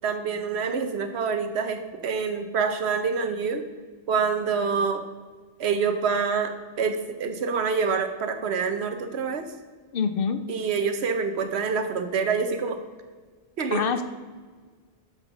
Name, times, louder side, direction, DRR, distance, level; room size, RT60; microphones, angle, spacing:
voice 1, 0.0-3.7 4.1-5.0 5.6-9.5 10.5-12.8 13.6-13.9, right 5 dB, 80° right, 8 dB, 1.1 m, -26 dB
voice 2, 9.9-10.5 13.7-14.0, left 6 dB, 65° left, 10 dB, 0.8 m, -25 dB
6.9 x 5.8 x 5.8 m, 1.5 s
omnidirectional pair, 1.1 m